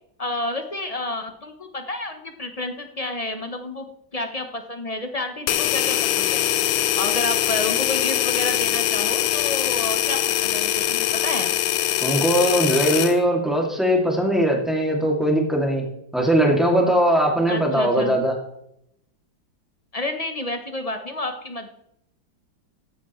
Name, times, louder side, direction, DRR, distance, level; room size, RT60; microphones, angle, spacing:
voice 1, 0.2-3.9 4.1-6.4 7.0-11.6 17.5-18.2 19.9-21.7, left 2 dB, 35° left, 6 dB, 0.5 m, -30 dB
sound 1, 5.5-13.2, left 12 dB, 80° left, 0.8 m, -22 dB
voice 2, 12.0-15.8 16.1-18.3, right 1 dB, ahead, -1 dB, 2.2 m, -20 dB
15.5 x 10.0 x 3.1 m, 0.76 s
omnidirectional pair, 2.1 m